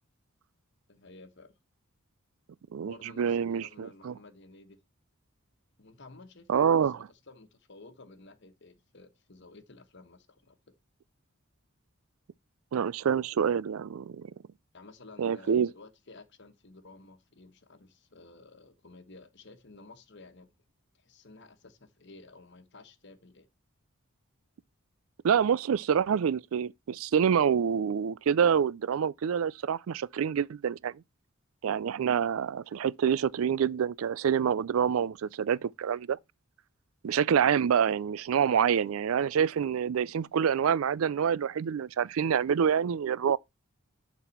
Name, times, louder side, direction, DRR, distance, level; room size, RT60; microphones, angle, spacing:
voice 1, 0.9-1.5 2.8-4.8 5.8-6.9 7.3-10.7 14.7-20.5 21.0-23.5, left 3 dB, 55° left, 1.2 m, -53 dB
voice 2, 2.7-4.1 6.5-7.0 12.7-14.3 15.2-15.7 25.2-31.0 31.6-36.2 37.0-43.4, right 7 dB, 75° right, 0.4 m, -27 dB
11.0 x 4.1 x 4.4 m
head